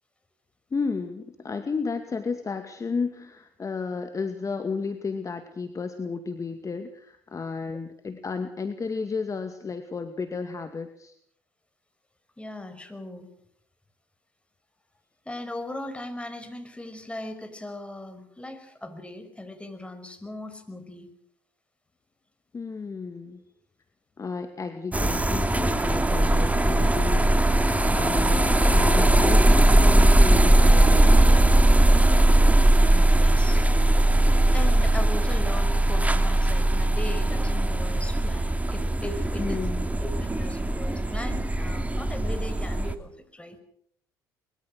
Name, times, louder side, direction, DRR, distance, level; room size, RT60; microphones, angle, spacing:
voice 1, 0.7-11.1 22.5-23.4 24.2-27.5 27.9-31.6 39.4-39.9, left 4 dB, 30° left, 7 dB, 2.3 m, -32 dB
voice 2, 12.4-13.3 15.3-21.1 32.9-33.6 34.5-43.6, left 1 dB, 10° left, 8 dB, 5.6 m, -38 dB
sound 1, 24.9-42.9, right 1 dB, 15° right, 2.5 m, -20 dB
23.5 x 22.5 x 6.5 m, 0.66 s
hypercardioid pair, 60°, 10 cm